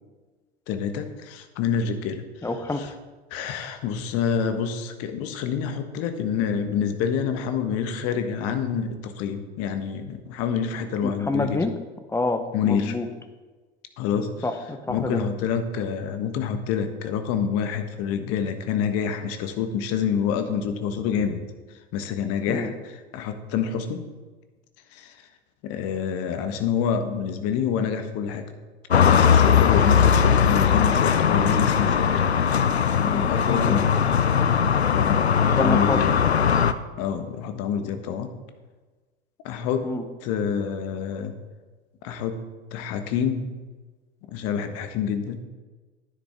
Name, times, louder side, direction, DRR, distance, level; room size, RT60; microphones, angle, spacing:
voice 1, 0.7-2.2 2.8-2.9 3.3-11.6 12.5-13.0 14.0-14.3 14.9-21.4 21.9-24.0 24.9-25.2 25.6-28.4 28.9-32.2 32.9-34.0 34.9-36.2 37.0-38.3 39.4-39.9 40.2-41.3 42.0-42.4 42.7-43.5 44.3-45.4, left 7 dB, 50° left, 8 dB, 1.4 m, -27 dB
voice 2, 2.4-2.9 11.0-11.7 12.1-13.1 14.4-15.2 22.5-22.7 33.5-33.8 35.6-36.0 39.8-40.0, left 2 dB, 10° left, 8 dB, 1.0 m, -27 dB
sound 1, 28.9-36.7, left 7 dB, 90° left, 0.6 m, -19 dB
11.5 x 10.0 x 3.6 m, 1.3 s
figure-of-eight pair, 75°, 31 cm